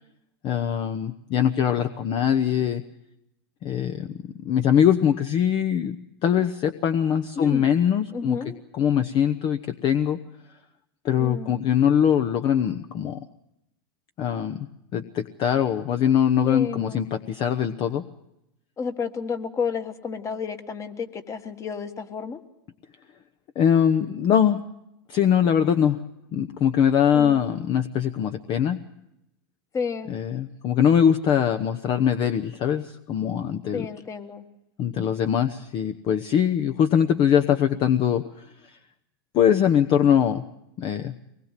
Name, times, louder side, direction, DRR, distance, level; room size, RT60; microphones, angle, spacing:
voice 1, 0.4-2.8 3.6-8.4 8.7-10.2 11.0-13.2 14.2-14.7 14.9-18.1 23.6-24.6 25.1-26.0 26.3-28.8 30.1-33.9 34.8-38.4 39.3-40.4 40.8-41.1, left 9 dB, 40° left, 9 dB, 1.0 m, -22 dB
voice 2, 8.1-8.6 11.2-11.7 16.4-17.0 18.8-22.4 27.1-27.6 29.7-30.2 33.7-34.5, left 5 dB, 25° left, 9 dB, 1.6 m, -31 dB
23.5 x 20.0 x 7.4 m, 0.85 s
hypercardioid pair, 115°, 13 cm